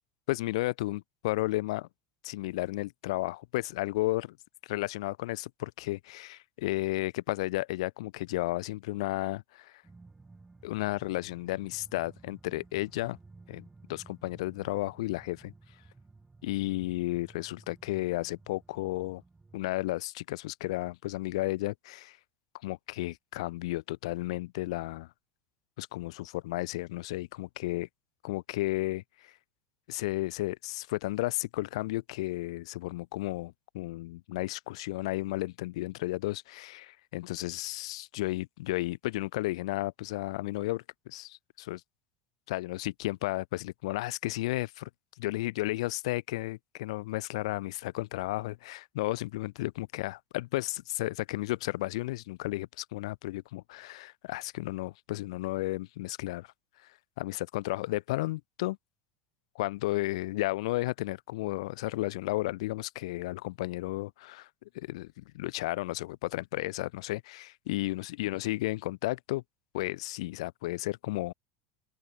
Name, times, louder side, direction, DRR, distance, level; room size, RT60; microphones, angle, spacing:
voice 1, 0.3-1.9 2.2-4.4 4.6-9.7 10.6-13.2 13.5-15.5 16.4-19.2 19.5-22.2 22.6-25.1 25.8-27.9 28.2-29.3 29.9-41.8 42.5-44.7 45.2-56.5 57.2-58.8 59.6-64.5 64.7-69.4 69.7-71.3, left 19 dB, 80° left, 0.4 m, -33 dB
sound 1, 9.8-19.8, right 3 dB, 10° right, 1.7 m, -55 dB
open air
supercardioid pair, 145°, 3 cm